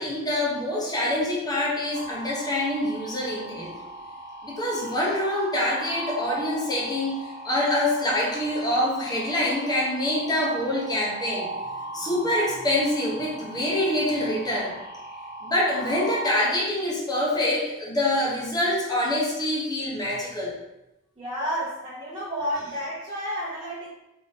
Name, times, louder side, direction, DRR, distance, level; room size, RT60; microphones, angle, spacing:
voice 1, 0.0-3.7 4.4-11.5 11.9-14.7 15.4-20.5, left 1 dB, 20° left, -5 dB, 0.8 m, -25 dB
sound 1, 1.9-16.5, right 1 dB, 35° left, 1.2 m, -39 dB
voice 2, 21.2-23.9, equal, 25° right, -10 dB, 0.9 m, -31 dB
3.8 x 2.8 x 3.5 m, 0.91 s
head